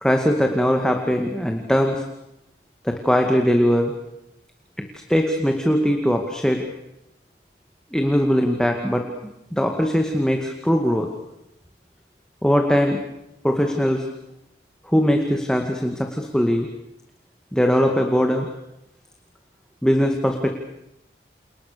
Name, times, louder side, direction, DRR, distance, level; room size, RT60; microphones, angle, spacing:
voice 1, 0.0-2.1 2.8-3.9 4.8-6.7 7.9-9.1 9.5-11.1 12.4-13.0 13.4-14.1 14.8-16.7 17.5-18.5 19.8-20.5, equal, 5° left, 3 dB, 2.1 m, -20 dB
29.5 x 29.0 x 6.8 m, 0.88 s
head